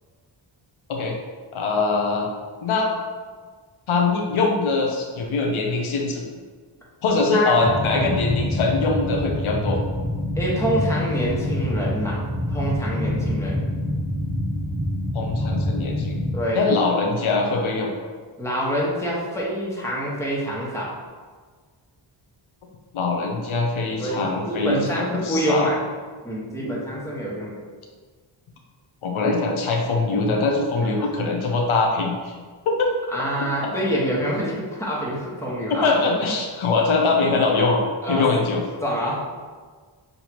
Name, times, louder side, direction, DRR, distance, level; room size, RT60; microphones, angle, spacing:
voice 1, 1.5-2.3 2.6-2.9 3.9-6.2 7.0-9.8 15.1-16.1 16.5-17.9 22.9-25.7 29.0-32.4 32.7-32.9 35.7-37.8 38.1-38.7, left 3 dB, 85° left, 1 dB, 0.8 m, -22 dB
voice 2, 7.3-8.1 10.3-12.2 12.5-13.6 16.3-16.7 18.4-20.9 24.0-25.8 26.2-27.6 31.0-31.1 33.1-35.9 36.6-36.7 38.0-38.3 38.8-39.2, equal, 5° left, -5 dB, 1.3 m, -26 dB
sound 1, 7.6-16.4, left 1 dB, 40° right, 1.3 m, -26 dB
6.6 x 2.8 x 2.9 m, 1.5 s
cardioid pair, 85°, 47 cm